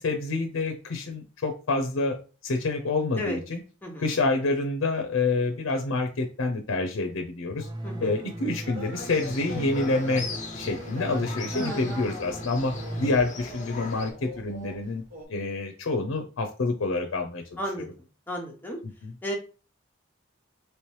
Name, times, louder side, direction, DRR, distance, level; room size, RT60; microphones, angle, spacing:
voice 1, 0.0-2.2 2.4-3.6 4.0-7.7 8.0-10.3 10.5-15.0 15.3-17.6 19.0-19.1, left 3 dB, 90° left, 5 dB, 0.5 m, -27 dB
sound 1, 7.6-13.1, right 1 dB, 25° right, 0.3 m, -38 dB
sound 2, 8.6-14.8 15.1-15.2, left 1 dB, 80° right, 1.7 m, -41 dB
sound 3, 9.0-14.1, left 4 dB, 40° left, 0.6 m, -40 dB
voice 2, 11.5-12.0 17.6-17.9 18.3-18.8 19.2-19.3, equal, 10° left, -1 dB, 0.8 m, -33 dB
3.0 x 3.0 x 3.0 m, 0.36 s
head